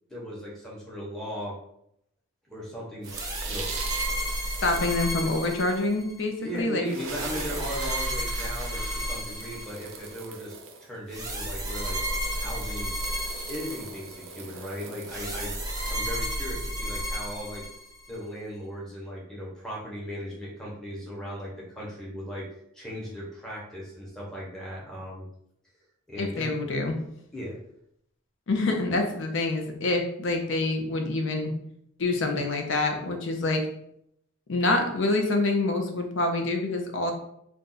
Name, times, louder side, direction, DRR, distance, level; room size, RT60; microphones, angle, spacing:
voice 1, 0.1-1.6 2.5-3.7 6.4-10.6 10.8-12.0 12.3-12.9 13.5-15.5 15.9-17.7 18.1-22.5 22.7-25.2 26.1-26.5 27.3-27.6, equal, 5° left, -6 dB, 0.9 m, -37 dB
sound 1, 3.0-5.8 6.6-6.7 6.8-16.0, right 5 dB, 65° right, 0.5 m, -41 dB
sound 2, 3.1-6.2 7.0-10.1 11.1-14.3 15.1-18.2, equal, 20° right, 0.6 m, -32 dB
voice 2, 4.6-6.9 26.2-26.9 28.5-31.5 32.0-33.6 34.5-37.1, left 2 dB, 65° left, 4 dB, 0.6 m, -26 dB
2.6 x 2.3 x 3.9 m, 0.73 s
head